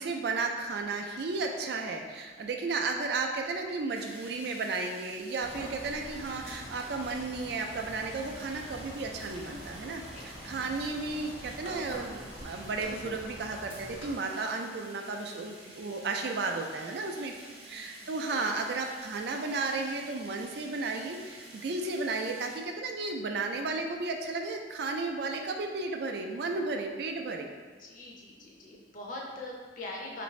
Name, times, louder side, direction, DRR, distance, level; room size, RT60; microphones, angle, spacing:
voice 1, 0.0-17.3 17.6-27.5, right 3 dB, 55° right, 3 dB, 0.3 m, -34 dB
sound 1, 3.9-22.6, right 1 dB, 35° right, 0.7 m, -50 dB
sound 2, 5.4-14.1, equal, 75° left, 1.2 m, -45 dB
voice 2, 10.1-10.5 17.0-18.5 27.8-30.2, left 2 dB, 45° left, -2 dB, 0.6 m, -44 dB
3.9 x 2.5 x 3.1 m, 1.5 s
head